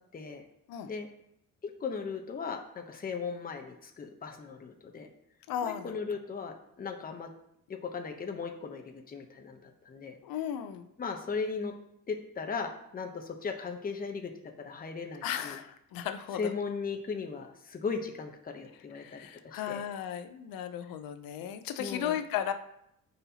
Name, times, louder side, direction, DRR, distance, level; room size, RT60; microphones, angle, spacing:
voice 1, 0.1-0.4 0.8-1.1 1.6-5.1 5.6-7.3 7.7-10.2 11.0-11.7 12.1-14.3 14.6-15.6 16.4-19.8 21.8-22.2, left 5 dB, 25° left, 4 dB, 0.8 m, -37 dB
voice 2, 5.5-5.9 10.2-10.9 15.2-16.4 18.9-22.5, left 9 dB, 85° left, 9 dB, 0.6 m, -35 dB
9.4 x 4.3 x 2.8 m, 0.78 s
cardioid pair, 115°, 34 cm